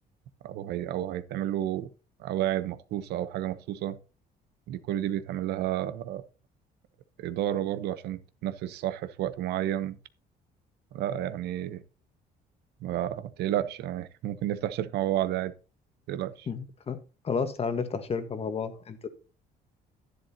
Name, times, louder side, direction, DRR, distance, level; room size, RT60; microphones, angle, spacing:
voice 1, 0.4-1.9 2.2-4.0 4.7-6.2 7.2-10.0 10.9-11.8 12.8-15.5 16.1-16.5, right 12 dB, 80° right, 0.9 m, -31 dB
voice 2, 16.5-17.0 17.2-19.1, left 5 dB, 35° left, 1.4 m, -31 dB
10.5 x 10.5 x 2.8 m
cardioid pair, 110°, 17 cm